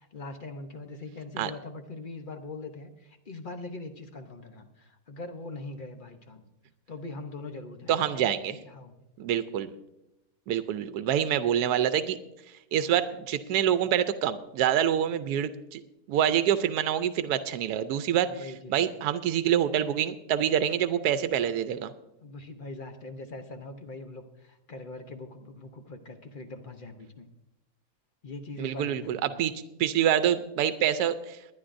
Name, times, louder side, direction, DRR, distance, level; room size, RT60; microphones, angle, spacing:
voice 1, 0.0-6.4 6.9-9.0 18.2-18.9 22.2-27.3 28.2-29.4, left 2 dB, 45° left, 6 dB, 0.8 m, -42 dB
voice 2, 7.9-8.5 9.2-9.7 10.5-12.2 12.7-15.8 16.1-18.3 18.7-21.9 28.6-29.5 29.8-31.4, right 10 dB, 85° right, 12 dB, 1.1 m, -26 dB
21.0 x 10.5 x 2.6 m, 0.90 s
omnidirectional pair, 1.6 m